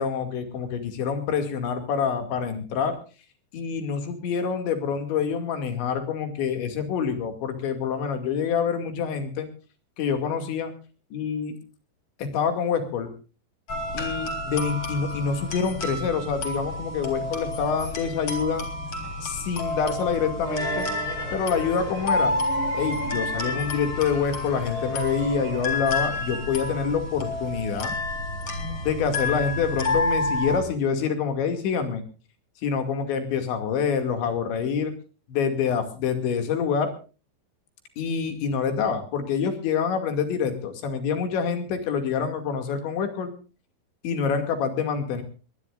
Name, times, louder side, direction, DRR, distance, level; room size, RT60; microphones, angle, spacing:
voice 1, 0.0-3.0 3.5-9.5 10.0-10.7 11.1-11.6 12.2-13.1 13.9-18.7 19.2-20.9 21.3-22.3 22.7-28.0 28.8-32.0 32.6-34.9 35.3-36.9 38.0-43.3 44.0-45.2, left 6 dB, 70° left, 7 dB, 4.6 m, -26 dB
sound 1, 13.7-30.6, left 2 dB, 35° left, 4.1 m, -30 dB
sound 2, 20.4-26.9, right 4 dB, 70° right, 8.5 m, -37 dB
22.0 x 19.5 x 2.5 m, 0.35 s
omnidirectional pair, 5.4 m